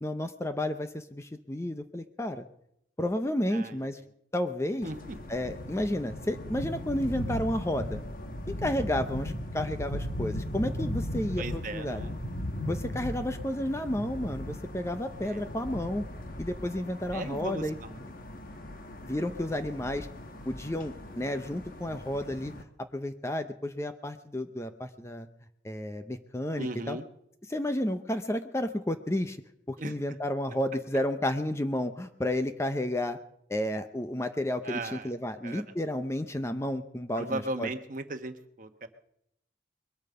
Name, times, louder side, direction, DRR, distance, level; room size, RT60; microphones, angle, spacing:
voice 1, 0.0-2.4 3.0-4.0 4.3-4.9 5.3-8.0 8.5-12.0 12.7-16.0 16.4-17.8 19.1-20.1 20.5-22.5 22.8-25.3 25.6-27.0 27.5-29.4 29.7-33.2 33.5-37.7, left 1 dB, 15° left, 8 dB, 0.6 m, -31 dB
voice 2, 3.5-3.9 4.8-5.2 11.4-12.1 15.2-15.5 17.1-18.0 26.6-27.0 29.8-29.9 34.6-35.1 35.4-35.6 37.1-38.9, right 2 dB, 45° right, 7 dB, 1.1 m, -37 dB
sound 1, 4.8-22.6, left 1 dB, 50° left, 1.2 m, -38 dB
21.5 x 8.8 x 6.8 m, 0.75 s
head